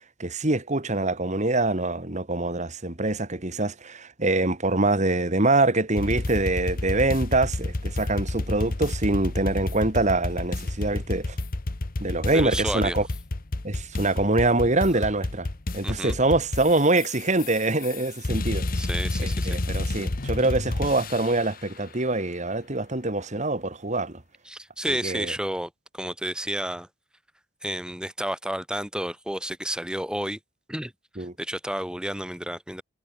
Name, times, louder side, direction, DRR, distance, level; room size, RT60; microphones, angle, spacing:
voice 1, 0.2-11.4 12.0-13.1 13.6-15.5 15.7-18.7 19.2-24.2 25.0-25.3 31.2-31.3, right 2 dB, 40° right, 2.4 m, -24 dB
sound 1, 6.0-21.5, left 2 dB, 50° left, 1.1 m, -30 dB
voice 2, 12.3-13.0 15.8-16.2 18.7-19.6 24.4-26.9 27.6-30.4 30.7-30.9 31.2-32.8, right 1 dB, 5° right, 6.5 m, -31 dB
head